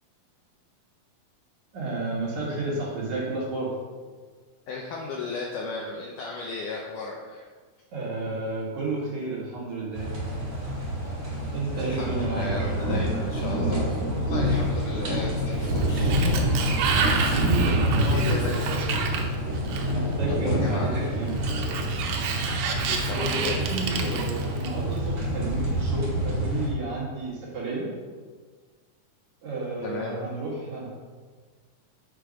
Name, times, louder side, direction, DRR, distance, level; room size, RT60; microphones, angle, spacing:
voice 1, 1.7-3.7 7.9-10.1 11.5-12.7 17.3-18.9 19.9-21.4 23.0-27.9 29.4-30.9, right 2 dB, 55° right, -5 dB, 2.6 m, -31 dB
voice 2, 4.7-7.5 11.7-16.4 18.0-19.1 20.3-21.1 22.7-23.7 29.8-30.2, left 3 dB, 85° left, -1 dB, 1.8 m, -35 dB
sound 1, 9.9-26.7, equal, 40° right, 3.0 m, -27 dB
Sliding door, 15.5-20.1 21.3-25.0, right 5 dB, 75° right, 2.4 m, -30 dB
8.3 x 4.5 x 5.1 m, 1.5 s
omnidirectional pair, 4.5 m